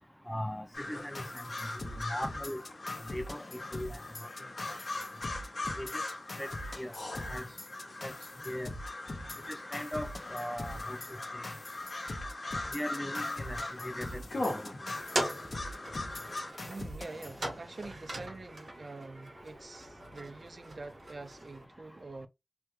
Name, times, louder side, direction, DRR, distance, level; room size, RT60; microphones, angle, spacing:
voice 1, 0.3-1.4 1.7-2.6 3.1-4.3 4.7-4.8 5.8-6.0 6.4-6.5 6.8-6.9 7.3-7.4 8.0-8.1 8.5-8.7 9.5-11.0 11.3-11.4 12.7-14.2 14.5-14.7, equal, 10° left, 0.4 m, -39 dB
sound 1, 0.7-16.5, left 2 dB, 90° left, 1.0 m, -40 dB
sound 2, 1.1-18.0, left 1 dB, 60° left, 0.6 m, -44 dB
sound 3, 14.9-21.7, right 1 dB, 80° right, 1.5 m, -41 dB
voice 2, 16.6-22.3, right 3 dB, 65° right, 0.4 m, -46 dB
3.3 x 2.2 x 3.0 m
wide cardioid pair, 70°, 0 cm